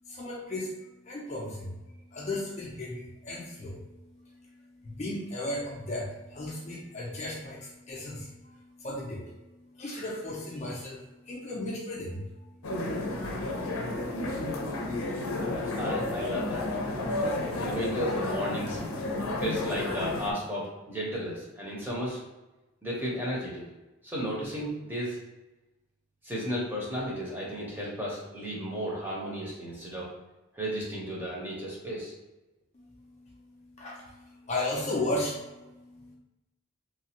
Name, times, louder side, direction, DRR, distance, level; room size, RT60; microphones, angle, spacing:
voice 1, 0.0-14.7 32.7-36.1, left 1 dB, 30° left, -3 dB, 0.4 m, -37 dB
sound 1, 12.6-20.3, left 2 dB, 85° left, 0.5 m, -31 dB
voice 2, 15.4-17.2 17.6-18.8 19.4-22.2 22.8-23.6 24.0-25.2 26.2-30.1 30.5-32.1, equal, 10° right, -5 dB, 0.7 m, -34 dB
3.1 x 2.2 x 2.8 m, 1.0 s
head